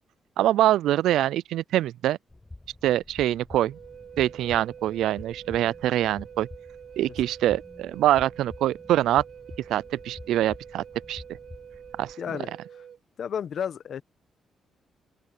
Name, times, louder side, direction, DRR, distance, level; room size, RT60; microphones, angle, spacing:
voice 1, 0.4-2.2 2.8-3.8 4.2-6.5 7.0-9.2 9.7-11.2 12.0-12.2, right 13 dB, 90° right, 0.3 m, -24 dB
sound 1, 2.3-12.1, left 2 dB, 15° left, 4.7 m, -47 dB
Wind instrument woodwind instrument, 3.7-13.0, right 8 dB, 65° right, 3.8 m, -46 dB
voice 2, 12.2-12.6 13.2-14.0, left 8 dB, 60° left, 1.0 m, -32 dB
open air
cardioid pair, 100°, 0 cm